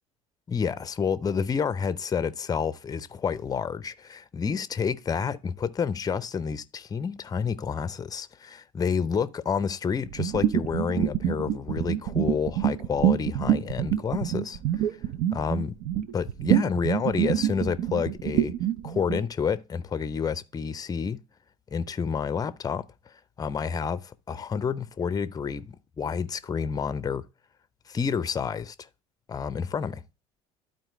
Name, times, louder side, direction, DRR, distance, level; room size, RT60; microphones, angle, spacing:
voice 1, 0.5-14.8 15.3-15.8 16.1-18.5 18.8-21.2 21.7-27.2 27.9-28.9 29.3-30.0, left 6 dB, 20° left, 0.6 m, -29 dB
sound 1, 10.1-19.2, right 11 dB, 55° right, 0.6 m, -26 dB
12.0 x 4.4 x 3.0 m
figure-of-eight pair, 65°, 17 cm